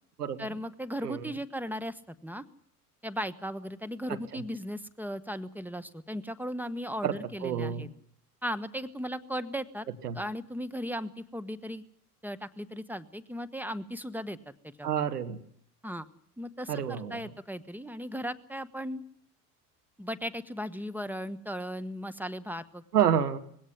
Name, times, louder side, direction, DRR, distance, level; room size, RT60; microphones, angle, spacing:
voice 1, 0.4-2.4 3.0-7.9 8.4-9.9 10.1-11.8 12.2-14.4 14.8-14.9 15.8-16.1 16.4-19.0 20.0-22.8, equal, 5° right, 12 dB, 1.2 m, -37 dB
voice 2, 7.4-7.9 10.0-10.2 14.8-15.4 16.7-17.2 22.9-23.4, right 9 dB, 90° right, 10 dB, 1.6 m, -28 dB
20.0 x 17.0 x 9.8 m, 0.65 s
hypercardioid pair, 75°, 46 cm